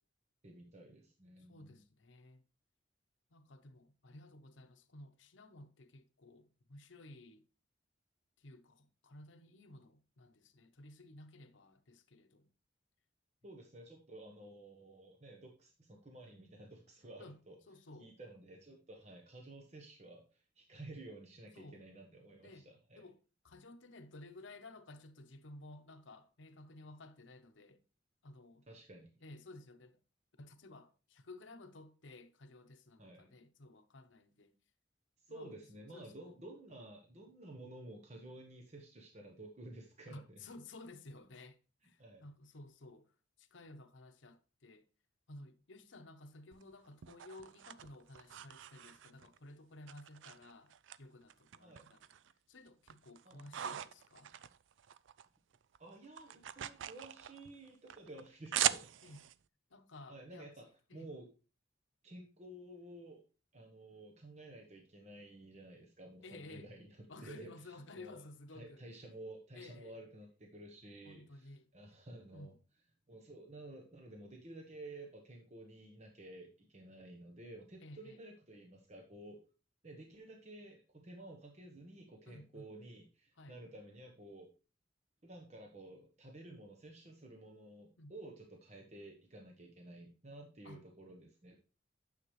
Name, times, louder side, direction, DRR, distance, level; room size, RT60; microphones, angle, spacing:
voice 1, 0.4-1.8 13.4-17.6 18.0-23.0 28.7-29.1 33.0-33.3 35.2-40.4 42.0-42.2 51.6-51.9 53.2-53.7 55.8-58.9 60.1-60.7 60.9-61.3 62.0-63.2 63.5-66.9 67.2-68.2 68.5-72.5 73.1-79.4 79.8-84.5 85.2-91.5, right 1 dB, 35° right, 1.1 m, -53 dB
voice 2, 1.4-2.4 3.3-7.5 8.4-12.5 17.2-17.4 17.7-18.1 21.5-21.8 22.4-22.7 23.0-23.2 23.4-27.8 28.2-28.6 29.2-30.0 30.4-34.5 35.3-35.5 35.9-36.4 40.1-41.6 41.8-44.8 45.3-52.0 52.5-54.3 57.0-57.1 59.0-59.2 59.7-60.5 60.9-61.1 66.2-66.7 67.1-68.8 69.5-70.0 71.0-71.6 72.3-72.6 77.8-78.2 82.3-82.7 83.4-83.6 88.0-88.1 90.6-90.8, left 2 dB, 85° left, 0.9 m, -55 dB
sound 1, 46.5-49.4 49.9-51.0 51.3-52.3 52.7-55.3 55.5-59.3, right 11 dB, 85° right, 0.4 m, -41 dB
9.5 x 6.6 x 3.2 m
head